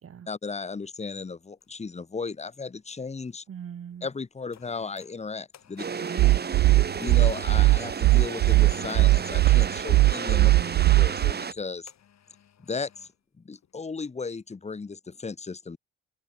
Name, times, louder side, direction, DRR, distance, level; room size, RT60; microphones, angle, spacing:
voice 1, 0.3-3.4 4.0-5.8 7.0-10.5 11.0-11.9 12.6-13.1 13.4-15.8, left 4 dB, 20° left, 1.3 m, -35 dB
sound 1, 0.8-0.9 1.6-3.3 4.0-6.9 8.2-9.2 10.1-10.8 11.9-13.2 13.5-13.8, left 9 dB, 60° left, 6.8 m, -58 dB
voice 2, 3.5-4.1 6.0-6.5 10.5-11.1, right 8 dB, 50° right, 1.9 m, -40 dB
sound 2, 5.8-11.5, right 6 dB, 35° right, 1.6 m, -33 dB
sound 3, 6.2-11.3, right 18 dB, 80° right, 0.5 m, -19 dB
cardioid pair, 90°, 30 cm